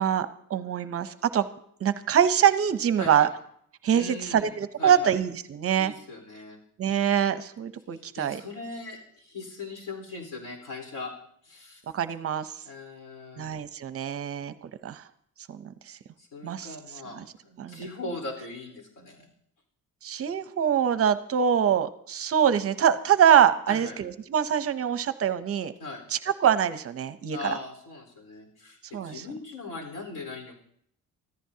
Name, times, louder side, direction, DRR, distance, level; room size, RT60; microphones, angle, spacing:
voice 1, 0.0-1.5 1.8-3.3 3.8-5.9 6.8-8.4 11.9-12.5 13.4-14.5 14.8-15.0 15.5-16.0 16.4-16.8 17.1-17.2 17.6-17.8 20.0-25.7 26.1-27.6 28.9-29.3, right 9 dB, 45° right, 11 dB, 0.7 m, -24 dB
voice 2, 3.9-4.5 4.8-5.1 5.7-6.6 7.9-11.1 11.4-11.8 12.6-13.5 16.2-19.3 23.7-23.9 25.8-26.0 27.3-30.6, left 2 dB, 75° left, 2 dB, 4.2 m, -39 dB
25.0 x 14.5 x 2.8 m, 0.67 s
cardioid pair, 170°, 32 cm